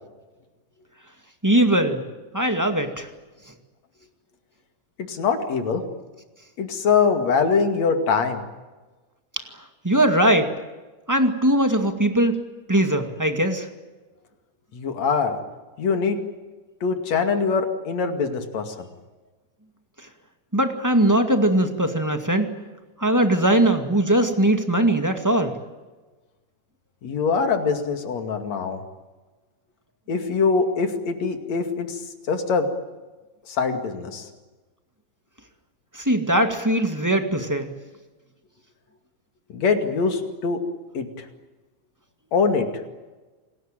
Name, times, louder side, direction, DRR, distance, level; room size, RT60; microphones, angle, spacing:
voice 1, 1.4-2.0 2.3-3.1 9.8-10.5 11.1-12.4 12.7-13.7 20.5-22.5 23.0-25.5 35.9-37.7, right 1 dB, 10° right, 6 dB, 1.5 m, -20 dB
voice 2, 5.0-5.8 6.6-8.4 14.7-15.4 15.8-16.2 16.8-18.9 27.0-28.8 30.1-32.0 32.3-32.7 33.5-34.3 39.5-40.6 40.9-41.3 42.3-42.7, left 5 dB, 65° left, 6 dB, 3.6 m, -23 dB
28.0 x 19.5 x 9.0 m, 1.2 s
omnidirectional pair, 3.3 m